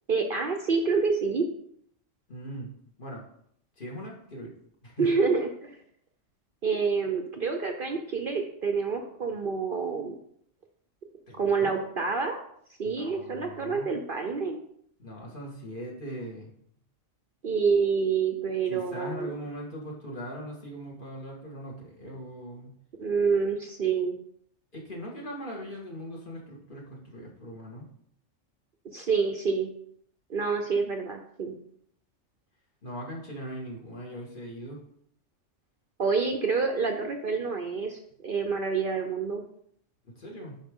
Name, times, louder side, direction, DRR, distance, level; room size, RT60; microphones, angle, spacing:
voice 1, 0.1-1.5 5.0-5.8 6.6-10.1 11.3-12.4 12.8-14.6 17.4-19.3 23.0-24.2 28.9-29.7 30.3-31.5 36.0-39.4, right 5 dB, 50° right, 4 dB, 0.8 m, -27 dB
voice 2, 2.3-2.7 3.0-3.3 3.8-4.5 4.8-5.1 11.3-11.9 12.8-13.9 15.0-16.5 18.7-22.7 24.7-27.9 32.8-34.8 40.0-40.6, equal, 40° left, -3 dB, 2.1 m, -40 dB
10.5 x 4.7 x 3.7 m, 0.68 s
omnidirectional pair, 1.3 m